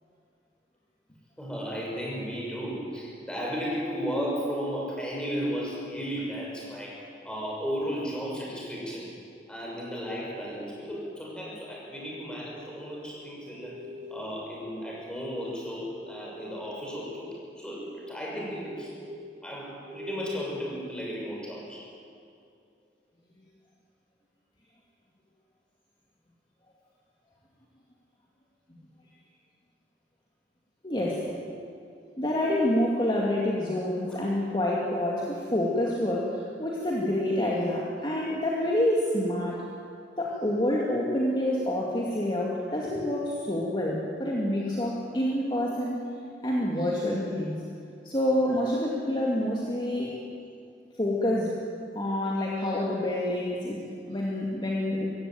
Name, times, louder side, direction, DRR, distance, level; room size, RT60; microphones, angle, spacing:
voice 1, 1.4-7.0 7.2-9.1 9.5-13.8 14.1-17.3 17.6-18.9 19.4-21.8 31.2-31.3 34.1-34.2, equal, 5° left, -4 dB, 6.5 m, -34 dB
sound 1, 10.1-15.4 15.8-21.6, left 2 dB, 25° right, 5.8 m, -45 dB
voice 2, 30.8-31.3 32.2-39.6 40.2-46.0 46.4-47.6 48.0-50.2 51.0-51.6 51.9-55.1, left 1 dB, 25° left, -3 dB, 2.4 m, -27 dB
24.0 x 16.0 x 9.1 m, 2.4 s
head